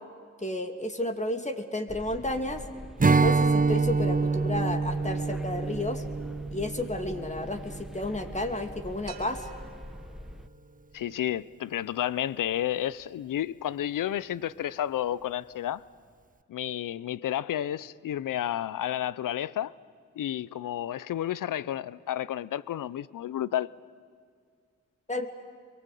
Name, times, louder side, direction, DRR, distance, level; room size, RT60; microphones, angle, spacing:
voice 1, 0.4-2.6 3.1-6.0 6.5-9.5 25.1-25.3, left 1 dB, 20° left, 2.7 m, -32 dB
sound 1, 1.9-10.5, equal, ahead, 1.0 m, -44 dB
Strum, 3.0-8.4, right 4 dB, 25° right, 0.9 m, -26 dB
sound 2, 9.1-10.9, right 4 dB, 75° right, 2.7 m, -49 dB
voice 2, 10.9-15.8 16.5-19.7 20.2-23.7, left 11 dB, 75° left, 0.7 m, -31 dB
28.5 x 23.0 x 8.4 m
supercardioid pair, 45°, 32 cm